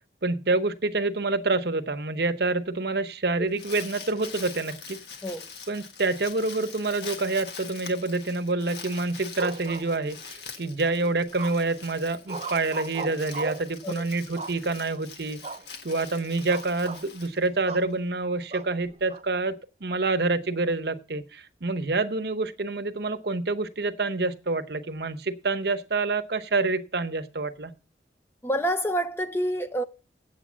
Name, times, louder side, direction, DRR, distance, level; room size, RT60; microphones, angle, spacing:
voice 1, 0.2-5.0 5.7-15.4 15.8-19.6 19.8-27.7, right 3 dB, 60° right, 0.8 m, -27 dB
Crumpling crinkling, 3.3-17.9, left 5 dB, 65° left, 1.6 m, -44 dB
sound 1, 9.3-10.4 11.4-11.8 12.3-13.7 14.4-14.9 15.4-15.7 16.0-16.1 16.5-17.0 17.7-17.9 18.5-19.2, right 4 dB, 35° right, 0.5 m, -37 dB
voice 2, 28.4-29.8, right 1 dB, 15° left, 0.6 m, -27 dB
8.4 x 7.8 x 6.1 m
head